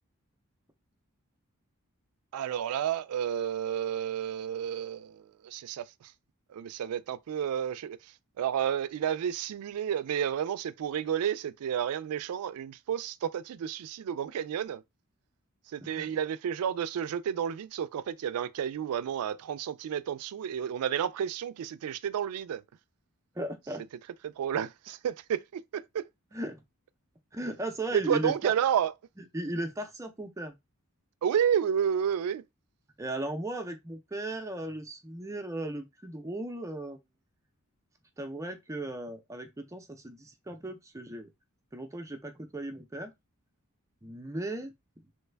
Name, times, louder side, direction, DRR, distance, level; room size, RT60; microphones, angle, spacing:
voice 1, 2.3-6.1 6.5-14.8 15.7-22.6 24.2-26.1 27.9-28.9 31.2-32.4, right 9 dB, 75° right, 0.3 m, -31 dB
voice 2, 15.8-16.1 23.4-23.8 26.3-26.6 27.3-28.5 29.3-30.5 33.0-37.0 38.2-41.3 41.7-43.1 44.0-44.7, right 1 dB, 15° right, 0.4 m, -36 dB
3.1 x 2.1 x 3.3 m
head